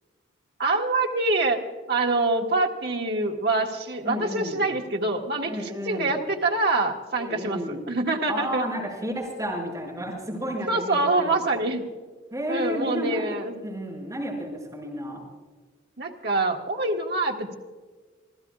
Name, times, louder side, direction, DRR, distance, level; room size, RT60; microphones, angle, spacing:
voice 1, 0.6-1.6 1.9-8.7 10.7-11.8 12.5-13.6 16.0-17.5, right 2 dB, 55° right, 1 dB, 1.6 m, -25 dB
voice 2, 4.0-4.6 5.4-6.2 7.1-7.8 8.3-11.4 12.3-13.4 13.6-15.2, equal, 20° right, -4 dB, 5.9 m, -32 dB
28.5 x 15.5 x 2.4 m, 1.4 s
head